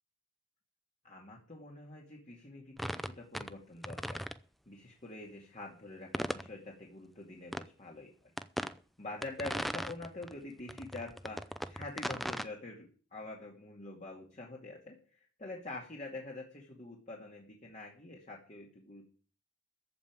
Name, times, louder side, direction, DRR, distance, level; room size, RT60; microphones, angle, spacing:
voice 1, 1.0-4.2 4.7-8.1 9.0-19.1, left 2 dB, 40° left, -2 dB, 2.4 m, -46 dB
sound 1, 2.8-3.5 3.8-4.4 6.1-6.5 7.5-7.6 8.4-8.7 9.2-10.3 10.7-12.4, equal, ahead, 0.6 m, -37 dB
14.5 x 5.5 x 9.0 m, 0.40 s
head